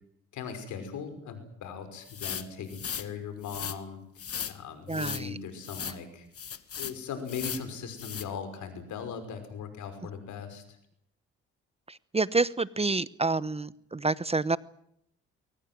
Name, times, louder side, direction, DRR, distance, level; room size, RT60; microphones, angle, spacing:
voice 1, 0.3-4.0 4.5-6.3 6.8-10.6, left 6 dB, 75° left, 5.7 m, -39 dB
sound 1, 2.1-3.1 3.4-3.8 4.2-4.6 4.9-5.2 5.6-6.0 6.3-7.0 7.3-7.7 8.0-8.3, left 8 dB, 50° left, 1.9 m, -37 dB
voice 2, 4.9-5.3 11.9-14.6, right 3 dB, 20° right, 0.9 m, -28 dB
22.5 x 19.0 x 9.3 m
supercardioid pair, 55°, 30 cm